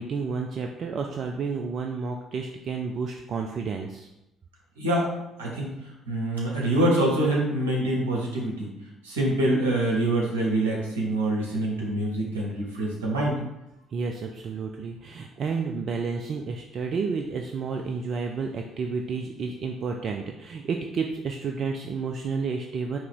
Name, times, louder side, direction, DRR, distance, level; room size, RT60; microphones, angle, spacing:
voice 1, 0.0-4.1 13.9-23.0, right 5 dB, 45° right, 3 dB, 0.3 m, -31 dB
voice 2, 4.8-5.1 5.4-5.7 6.1-8.7 9.0-13.4, right 1 dB, 75° right, -3 dB, 0.9 m, -25 dB
4.6 x 2.8 x 3.6 m, 0.91 s
figure-of-eight pair, 50°, 0 cm